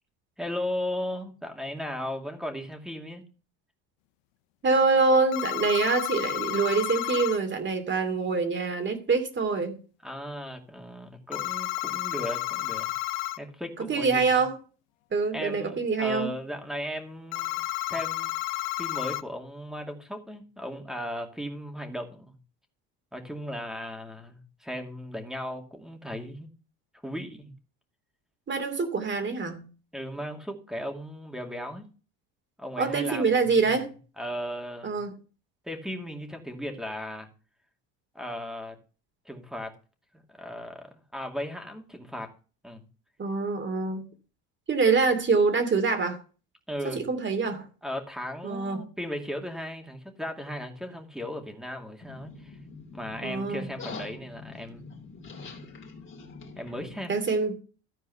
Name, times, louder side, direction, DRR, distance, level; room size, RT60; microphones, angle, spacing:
voice 1, 0.4-3.2 10.0-12.9 13.4-14.3 15.3-17.6 17.9-18.3 18.8-22.4 23.1-26.5 27.0-27.5 29.9-31.9 32.6-33.3 33.6-33.7 34.2-35.0 35.6-37.3 38.1-38.8 39.2-39.7 40.1-42.3 42.6-42.8 46.7-47.0 47.8-52.6 52.9-55.0 56.6-57.1, equal, ahead, 2.4 m, -36 dB
voice 2, 4.6-9.8 13.9-14.6 15.1-16.3 28.5-29.7 32.8-33.9 34.8-35.2 43.2-44.1 44.7-46.2 46.9-47.7 48.4-48.8 53.2-53.7 57.1-57.6, right 4 dB, 30° right, 2.7 m, -25 dB
sound 1, 5.3-7.4 11.3-13.4 17.3-19.2, left 20 dB, 80° left, 0.7 m, -31 dB
sound 2, 52.0-57.0, left 4 dB, 30° left, 2.7 m, -44 dB
14.0 x 4.7 x 6.8 m
supercardioid pair, 95°, 37 cm